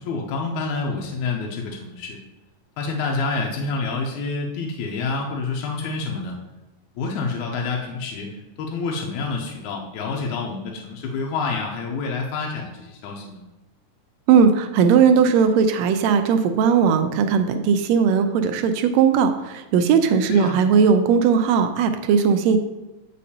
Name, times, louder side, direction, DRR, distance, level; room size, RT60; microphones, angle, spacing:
voice 1, 0.0-2.2 2.8-6.4 7.0-13.4 20.3-20.6, left 4 dB, 85° left, 0 dB, 2.1 m, -28 dB
voice 2, 14.3-22.6, right 6 dB, 80° right, 8 dB, 1.7 m, -18 dB
8.3 x 5.3 x 2.8 m, 1.0 s
omnidirectional pair, 3.3 m